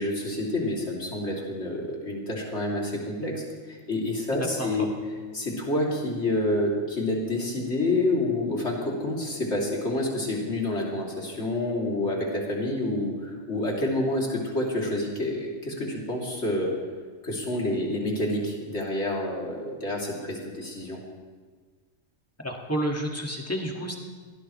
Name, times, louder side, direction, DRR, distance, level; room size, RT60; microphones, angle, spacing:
voice 1, 0.0-4.9 5.3-16.7 17.2-21.0, left 1 dB, 55° left, -3 dB, 3.4 m, -28 dB
voice 2, 4.3-4.7 22.4-23.9, equal, 10° left, 0 dB, 2.0 m, -30 dB
22.5 x 17.5 x 3.2 m, 1.5 s
omnidirectional pair, 1.4 m